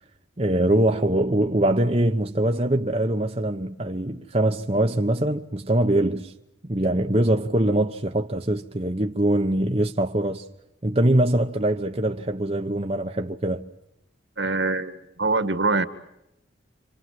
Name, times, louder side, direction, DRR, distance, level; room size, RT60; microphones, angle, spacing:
voice 1, 0.4-6.3 6.6-10.4 10.8-13.6, right 1 dB, 30° right, 1.0 m, -23 dB
voice 2, 14.4-15.8, right 3 dB, 70° right, 2.0 m, -24 dB
28.5 x 26.0 x 7.7 m
head